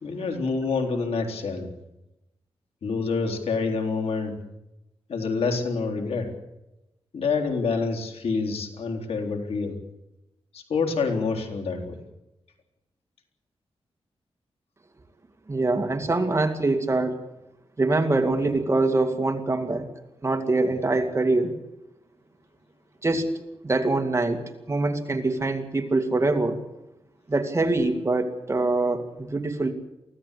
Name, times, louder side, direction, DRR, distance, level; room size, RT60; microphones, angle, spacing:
voice 1, 0.0-1.7 2.8-4.3 5.1-6.3 7.1-9.8 10.5-12.0, left 4 dB, 85° left, 3 dB, 3.7 m, -27 dB
voice 2, 15.5-17.2 17.8-19.9 20.2-21.6 23.0-23.3 23.6-26.6 27.3-29.7, right 2 dB, 25° right, 5 dB, 2.4 m, -24 dB
24.0 x 16.0 x 8.4 m, 0.93 s
wide cardioid pair, 120°, 10 cm